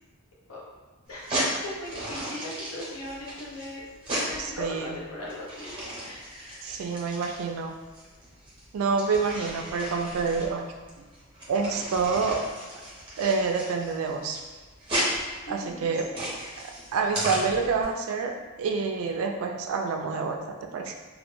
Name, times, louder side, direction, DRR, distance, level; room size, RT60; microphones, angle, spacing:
sound 1, 1.1-17.8, right 1 dB, 25° right, 0.6 m, -35 dB
voice 1, 1.6-3.8 4.2-6.7 15.5-16.3, left 1 dB, 85° left, -5 dB, 0.7 m, -39 dB
voice 2, 4.4-4.9 6.6-7.7 8.7-10.6 11.5-12.5 13.2-14.4 15.5-16.1 16.9-20.9, right 4 dB, 75° right, 4 dB, 0.3 m, -27 dB
2.1 x 2.1 x 3.0 m, 1.4 s
head